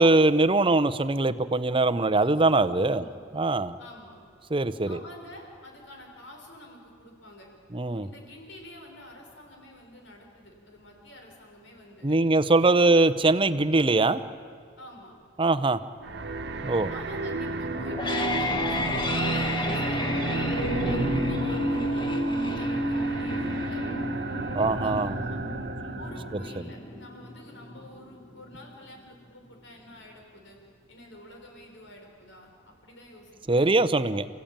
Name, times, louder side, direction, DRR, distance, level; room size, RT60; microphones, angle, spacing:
voice 1, 0.0-3.0 3.3-3.8 4.5-5.0 7.7-8.1 12.0-14.2 15.4-15.8 16.6-16.9 24.5-25.2 33.5-34.3, right 2 dB, 30° right, 13 dB, 0.8 m, -22 dB
voice 2, 3.8-4.2 4.8-7.5 7.9-12.2 12.6-12.8 14.8-15.1 16.9-23.8 24.6-25.4 26.0-30.6 30.9-33.7, left 1 dB, 75° left, 1 dB, 5.8 m, -48 dB
sound 1, 16.0-26.6, right 2 dB, 60° right, 1.3 m, -32 dB
sound 2, 17.7-28.7, left 1 dB, 25° left, 1.7 m, -31 dB
29.5 x 16.0 x 9.0 m, 2.2 s
head